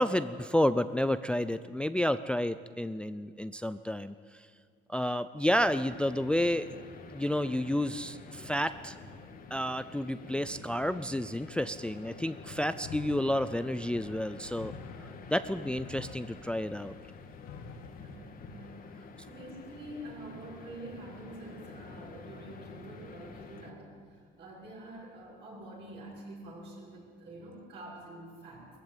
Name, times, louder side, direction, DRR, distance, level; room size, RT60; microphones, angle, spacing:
voice 1, 0.0-4.5 4.9-6.7 7.1-9.0 9.5-14.7 15.3-16.9, left 1 dB, 5° left, 13 dB, 0.4 m, -30 dB
sound 1, 5.5-23.7, left 4 dB, 45° left, 1.8 m, -48 dB
sound 2, 12.8-18.2, left 5 dB, 75° left, 1.8 m, -48 dB
voice 2, 18.0-28.7, right 1 dB, 55° right, -6 dB, 6.7 m, -47 dB
19.5 x 14.5 x 9.2 m, 2.1 s
cardioid pair, 125°, 21 cm